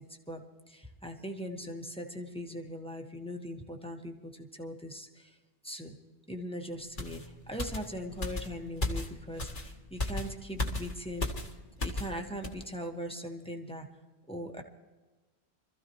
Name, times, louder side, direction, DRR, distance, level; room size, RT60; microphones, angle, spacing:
voice 1, 0.0-5.4 5.6-5.9 6.3-11.3 11.8-13.9 14.3-14.6, equal, 5° left, 2 dB, 1.5 m, -40 dB
sound 1, 7.0-12.2 12.4-12.6, left 2 dB, 50° left, 1.8 m, -36 dB
25.5 x 14.5 x 3.1 m, 1.2 s
omnidirectional pair, 1.1 m